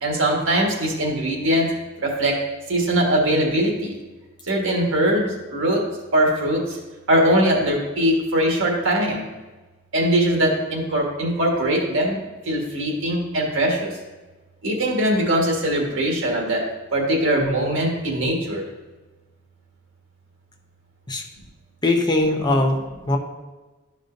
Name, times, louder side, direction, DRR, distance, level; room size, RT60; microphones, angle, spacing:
voice 1, 0.0-1.7 2.0-2.4 2.7-3.9 4.4-6.8 7.1-9.3 9.9-12.2 12.5-13.9 14.6-16.6 16.9-18.6, right 1 dB, 65° right, -1 dB, 1.6 m, -21 dB
voice 2, 21.8-22.8 23.1-23.2, left 2 dB, 20° left, 2 dB, 0.7 m, -20 dB
12.0 x 5.1 x 2.7 m, 1.2 s
head